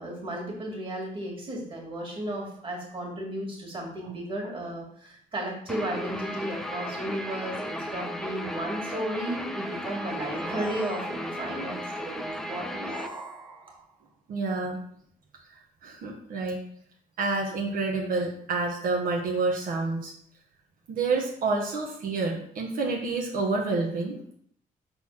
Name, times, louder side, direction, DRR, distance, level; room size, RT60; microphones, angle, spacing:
voice 1, 0.0-12.9, right 1 dB, 35° right, -1 dB, 2.2 m, -34 dB
Guitar, 5.7-13.1, equal, 5° left, 0.5 m, -35 dB
sound 1, 10.2-11.5 12.6-13.9, right 2 dB, 20° right, 1.1 m, -41 dB
voice 2, 14.3-14.8 15.8-16.6 17.2-20.1 20.9-24.4, right 3 dB, 75° right, 0 dB, 1.2 m, -28 dB
6.2 x 4.2 x 5.7 m, 0.64 s
cardioid pair, 160°, 14 cm